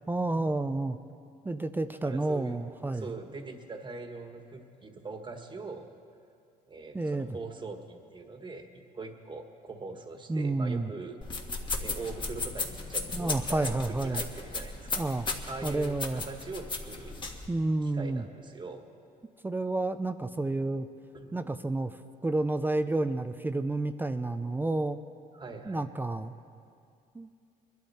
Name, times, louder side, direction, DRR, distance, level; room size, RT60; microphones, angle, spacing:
voice 1, 0.1-1.0 1.4-3.1 6.9-7.3 10.3-10.9 13.1-14.2 14.9-15.3 15.6-16.2 17.5-18.2 19.4-20.9 21.3-25.0 25.7-26.3 27.1-27.5, right 2 dB, 10° right, 10 dB, 0.5 m, -30 dB
voice 2, 2.0-2.6 2.9-5.9 6.7-8.7 8.9-11.2 11.8-15.0 15.4-17.3 17.8-18.9 21.1-21.3 25.3-25.8, right 3 dB, 25° right, 5 dB, 1.6 m, -42 dB
sound 1, 11.2-17.5, left 3 dB, 30° left, 1.7 m, -36 dB
23.5 x 12.0 x 4.3 m, 2.4 s
cardioid pair, 110°, 17 cm